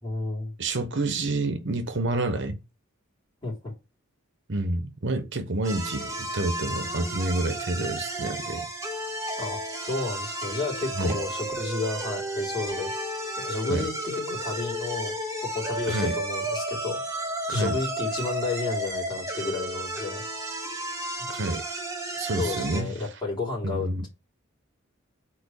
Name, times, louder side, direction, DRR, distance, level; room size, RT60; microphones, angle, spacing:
voice 1, 0.0-0.5 3.4-3.7 9.4-12.9 13.4-15.1 15.4-20.2 22.4-24.1, left 3 dB, 25° left, 3.5 m, -32 dB
voice 2, 0.6-2.6 4.5-8.6 11.0-11.2 13.7-13.9 15.9-16.2 17.5-17.8 21.3-21.6 22.2-22.9 23.6-24.1, right 2 dB, 60° right, 1.0 m, -28 dB
sound 1, 5.6-22.8, right 1 dB, 15° right, 1.4 m, -32 dB
8.2 x 3.2 x 6.4 m
head